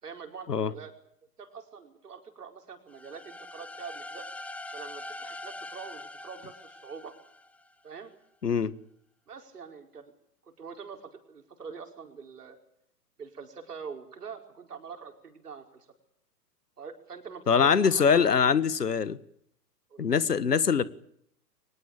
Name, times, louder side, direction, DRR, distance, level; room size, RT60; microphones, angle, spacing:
voice 1, 0.0-0.9 1.4-4.3 4.7-7.2 7.8-8.1 9.3-10.1 10.4-12.6 13.2-15.9 16.8-18.3 19.9-20.1, right 6 dB, 70° right, 4 dB, 5.1 m, -44 dB
sound 1, 2.9-7.7, left 2 dB, 5° left, 1.3 m, -43 dB
voice 2, 17.5-19.2 20.0-20.8, left 6 dB, 75° left, 17 dB, 1.6 m, -23 dB
23.5 x 20.5 x 8.8 m, 0.69 s
figure-of-eight pair, 115°, 48 cm